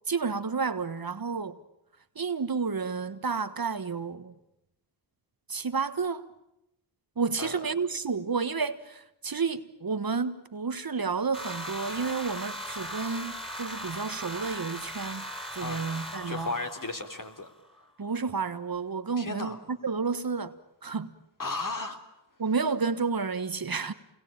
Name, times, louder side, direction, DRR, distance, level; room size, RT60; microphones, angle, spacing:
voice 1, 0.1-1.6 2.1-4.3 5.5-6.3 7.2-16.5 18.0-20.5 20.8-21.1 22.4-23.9, right 5 dB, 45° right, 1.5 m, -31 dB
voice 2, 7.4-7.7 15.6-15.9 16.3-17.5 17.8-17.9 19.2-19.6 21.4-22.0, left 3 dB, 40° left, 3.4 m, -35 dB
sound 1, 11.3-17.5, equal, 10° left, 4.9 m, -39 dB
28.0 x 21.5 x 8.9 m
cardioid pair, 45°, 49 cm